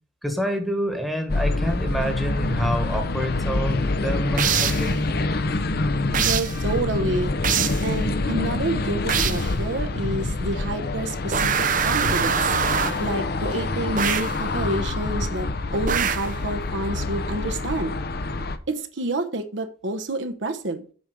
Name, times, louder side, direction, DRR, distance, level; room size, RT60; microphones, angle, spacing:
voice 1, 0.2-5.2, equal, ahead, 3 dB, 1.4 m, -27 dB
sound 1, 1.3-18.6, left 2 dB, 50° left, 0.7 m, -26 dB
sound 2, 4.4-4.9 6.1-6.6 7.4-7.9 9.1-9.5 11.3-13.1 14.0-14.4 15.9-16.4, right 8 dB, 40° right, 0.6 m, -24 dB
voice 2, 6.2-7.3 7.8-11.5 11.8-12.6 13.0-15.5 15.7-17.9 18.7-20.8, right 2 dB, 65° right, 7 dB, 0.9 m, -28 dB
7.9 x 5.3 x 6.0 m, 0.41 s
head